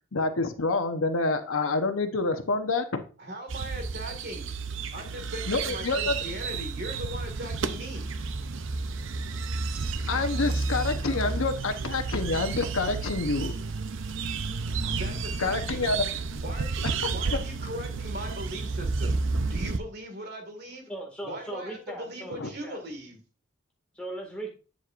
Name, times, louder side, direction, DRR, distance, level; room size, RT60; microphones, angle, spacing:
voice 1, 0.1-3.0 5.5-6.1 10.1-13.5 15.4-16.0 16.8-16.9 17.3-17.4 22.4-22.5, left 3 dB, 85° left, 8 dB, 0.9 m, -27 dB
voice 2, 3.2-4.5 4.9-8.1 14.9-15.9 16.4-19.2 19.5-20.9 21.2-23.2, equal, 50° right, 4 dB, 1.9 m, -39 dB
sound 1, 3.5-19.8, right 4 dB, 65° right, 0.6 m, -31 dB
voice 3, 20.9-22.8 23.9-24.5, right 1 dB, 5° left, 0 dB, 1.9 m, -38 dB
8.4 x 7.3 x 2.5 m, 0.34 s
head